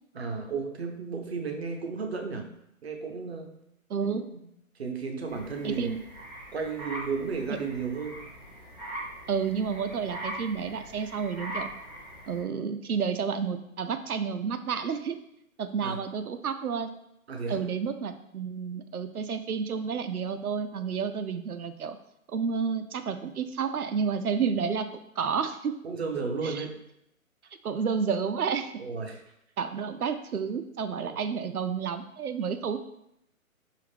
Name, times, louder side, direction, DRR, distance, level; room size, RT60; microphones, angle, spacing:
voice 1, 0.1-2.5 2.8-3.5 4.1-4.4 4.8-6.0 6.5-8.2 15.8-16.0 17.3-17.7 25.8-26.7 28.8-29.2 31.0-31.2, right 5 dB, 50° right, 3 dB, 0.6 m, -33 dB
voice 2, 3.9-4.2 5.6-6.0 9.3-11.7 12.3-15.2 15.6-16.9 17.5-22.0 22.3-24.9 25.2-25.8 26.4-26.7 27.6-28.8 29.6-32.8, right 6 dB, 90° right, 9 dB, 0.5 m, -30 dB
sound 1, 5.3-12.4, right 1 dB, 15° left, 0.5 m, -41 dB
4.9 x 2.5 x 3.4 m, 0.80 s
figure-of-eight pair, 140°, 43 cm